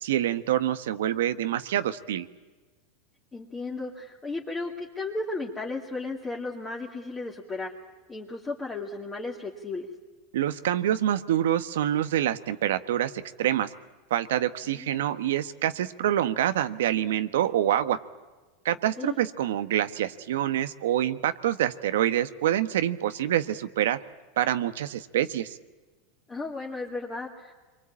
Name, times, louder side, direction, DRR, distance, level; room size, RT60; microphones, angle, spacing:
voice 1, 0.0-2.3 10.3-13.1 13.4-13.7 14.1-18.0 18.6-24.0 24.4-25.6, right 11 dB, 90° right, 10 dB, 1.3 m, -26 dB
voice 2, 3.3-7.7 8.1-9.9 14.6-15.1 19.0-19.2 26.3-27.5, left 3 dB, 15° left, -3 dB, 2.5 m, -35 dB
27.0 x 23.5 x 8.7 m, 1.3 s
supercardioid pair, 150°, 0 cm